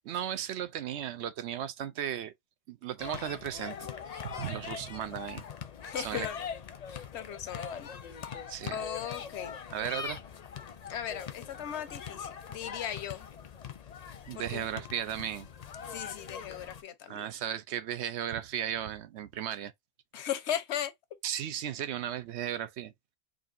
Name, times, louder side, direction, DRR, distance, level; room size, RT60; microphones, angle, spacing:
voice 1, 0.0-2.3 2.7-5.4 6.0-6.3 8.5-8.8 9.7-10.2 14.3-15.5 17.1-19.7 21.2-22.9, right 10 dB, 80° right, 0.9 m, -35 dB
sound 1, 3.0-16.8, left 7 dB, 45° left, 0.5 m, -42 dB
voice 2, 5.8-6.4 6.9-8.2 8.7-9.5 10.9-13.3 14.3-14.6 15.9-17.3 20.1-20.9, left 9 dB, 85° left, 1.0 m, -37 dB
5.1 x 2.7 x 2.5 m
omnidirectional pair, 1.1 m